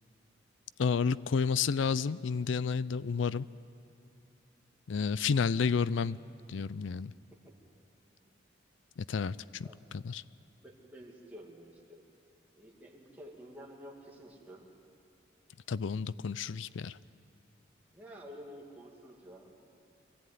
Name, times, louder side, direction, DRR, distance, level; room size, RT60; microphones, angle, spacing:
voice 1, 0.8-3.5 4.9-6.2 6.5-7.1 9.0-9.7 9.9-10.2 15.7-17.0, left 5 dB, 75° left, 18 dB, 0.4 m, -31 dB
voice 2, 10.6-12.0 12.5-14.7 17.9-19.7, equal, 10° right, -3 dB, 2.4 m, -50 dB
23.0 x 14.5 x 9.3 m, 2.5 s
head